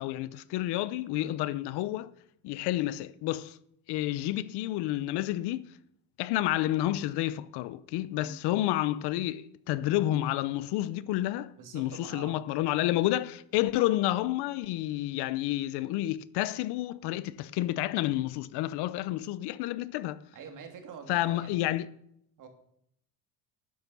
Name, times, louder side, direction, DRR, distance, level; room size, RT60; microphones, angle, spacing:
voice 1, 0.0-2.1 2.4-3.6 3.9-5.7 6.2-20.2 21.1-21.9, left 15 dB, 75° left, 0.8 m, -30 dB
voice 2, 11.6-12.4 20.3-21.6 22.4-22.5, right 6 dB, 50° right, 2.6 m, -45 dB
12.0 x 10.5 x 5.5 m
cardioid pair, 145°, 40 cm